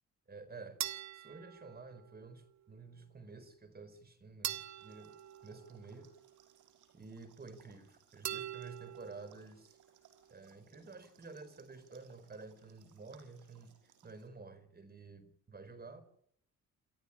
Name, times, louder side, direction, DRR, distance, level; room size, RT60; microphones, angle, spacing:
voice 1, 0.3-0.8 1.1-5.2 5.4-6.1 6.9-9.8 10.3-16.0, right 3 dB, 30° right, 13 dB, 4.4 m, -51 dB
sound 1, 0.8-2.3 4.4-6.3 8.2-9.4, right 11 dB, 65° right, 1.6 m, -43 dB
sound 2, 4.8-14.3, right 8 dB, 85° right, 5.6 m, -67 dB
29.0 x 13.5 x 8.7 m, 0.69 s
cardioid pair, 90°, 30 cm